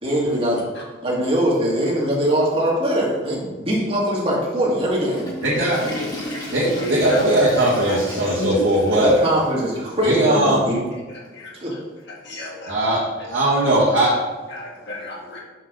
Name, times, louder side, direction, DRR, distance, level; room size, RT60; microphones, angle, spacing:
voice 1, 0.0-0.6 1.0-5.2 8.9-10.8 11.6-11.7, equal, 30° right, -5 dB, 2.2 m, -21 dB
Water / Toilet flush, 4.7-9.7 10.0-10.1 10.9-11.0 12.3-12.4, left 1 dB, 20° left, 1.5 m, -35 dB
voice 2, 5.4-5.8 6.5-9.1 10.0-10.6 12.7-13.0 13.3-14.1, right 1 dB, 70° right, -8 dB, 1.8 m, -19 dB
voice 3, 6.6-8.0 8.4-8.7 11.1-11.5 12.2-12.7 13.6-13.7 14.5-15.4, left 1 dB, 60° left, -4 dB, 1.9 m, -31 dB
6.0 x 4.9 x 6.1 m, 1.2 s
head